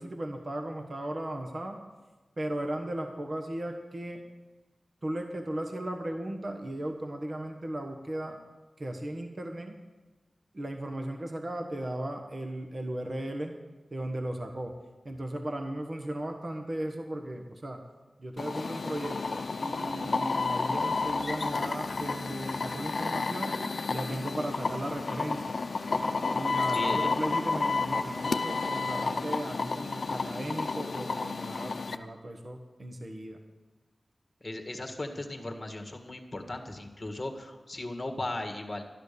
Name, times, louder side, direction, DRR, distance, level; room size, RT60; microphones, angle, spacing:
voice 1, 0.0-1.8 2.4-4.2 5.0-8.4 8.8-9.7 10.5-13.5 13.9-14.8 15.0-17.8 18.2-23.6 23.9-25.6 26.3-33.4, right 1 dB, 45° right, 4 dB, 1.3 m, -36 dB
sound 1, 18.4-32.0, left 4 dB, 65° left, 0.7 m, -31 dB
voice 2, 26.7-27.1 34.4-38.8, left 2 dB, 25° left, 3 dB, 1.8 m, -37 dB
12.5 x 11.0 x 6.8 m, 1.2 s
wide cardioid pair, 85°, 0 cm